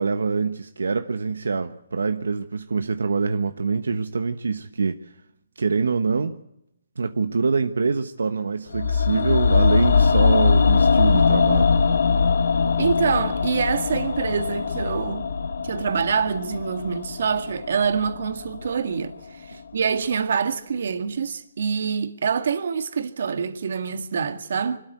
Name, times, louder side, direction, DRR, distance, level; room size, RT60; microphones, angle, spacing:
voice 1, 0.0-5.0 5.6-6.4 7.0-11.7 19.5-19.6, right 4 dB, 90° right, 1.1 m, -25 dB
sound 1, 8.7-18.8 19.1-19.2, left 5 dB, 75° left, 1.6 m, -21 dB
voice 2, 12.8-15.3 15.6-24.8, right 6 dB, 65° right, 2.0 m, -25 dB
25.0 x 13.0 x 8.1 m
hypercardioid pair, 160°, 0 cm